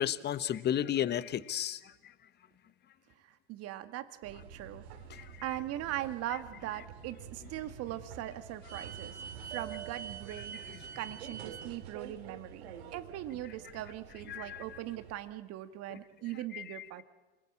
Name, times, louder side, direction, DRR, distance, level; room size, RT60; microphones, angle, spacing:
voice 1, 0.0-1.8 14.3-14.6 16.5-16.6, left 10 dB, 30° left, 16 dB, 1.1 m, -32 dB
voice 2, 3.2-4.8 5.2-9.2 9.5-10.7 11.0-17.0, right 14 dB, 50° right, 10 dB, 1.9 m, -40 dB
sound 1, 4.2-15.1, right 7 dB, 80° right, 3.2 m, -47 dB
27.0 x 19.5 x 8.6 m, 1.2 s
hypercardioid pair, 95°, 32 cm